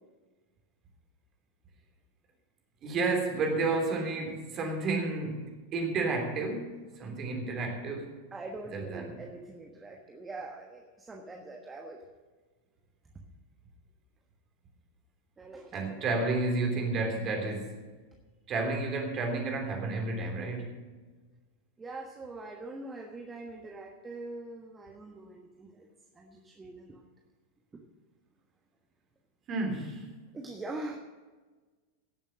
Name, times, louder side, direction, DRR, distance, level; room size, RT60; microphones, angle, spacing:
voice 1, 2.8-8.1 8.7-9.2 15.7-17.8 18.5-20.8 29.5-30.1, right 3 dB, 30° right, 2 dB, 3.3 m, -31 dB
voice 2, 8.3-12.1 15.4-16.0 21.8-25.9 26.2-27.0 27.7-27.8 30.3-31.0, right 2 dB, 15° right, 1 dB, 1.3 m, -43 dB
17.0 x 7.3 x 6.3 m, 1.3 s
figure-of-eight pair, 90°, 0 cm